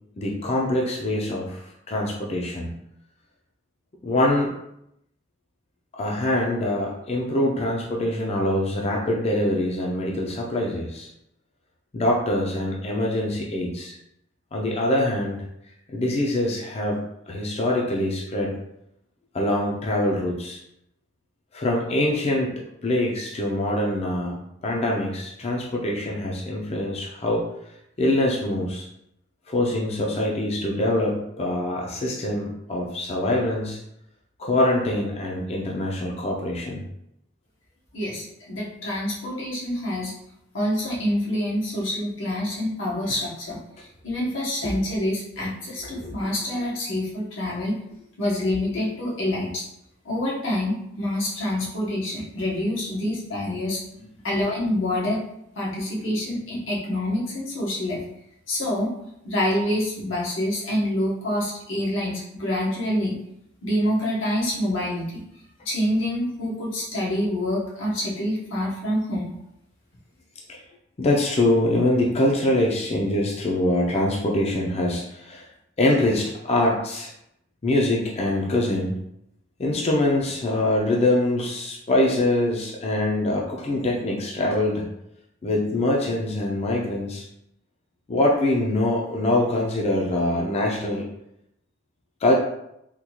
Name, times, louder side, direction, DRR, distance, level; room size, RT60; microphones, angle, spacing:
voice 1, 0.2-2.7 4.0-4.5 5.9-11.1 11.9-14.0 14.5-15.4 15.9-18.5 19.3-20.6 21.5-22.5 22.8-27.5 28.0-28.9 29.5-33.8 34.4-36.8 44.6-44.8 45.4-45.5 45.8-46.3 48.7-48.9 70.5-70.6 71.0-75.4 75.8-77.1 77.6-78.9 79.6-84.9 85.4-87.2 88.1-91.0 92.2-92.3, left 1 dB, 35° left, -2 dB, 0.4 m, -24 dB
voice 2, 37.9-40.1 40.5-43.6 44.0-47.7 48.2-49.6 50.0-53.8 54.2-55.2 55.6-58.0 58.5-58.9 59.2-63.1 63.6-65.1 65.7-69.3, left 1 dB, 90° left, -5 dB, 1.1 m, -26 dB
3.6 x 2.3 x 2.9 m, 0.79 s
head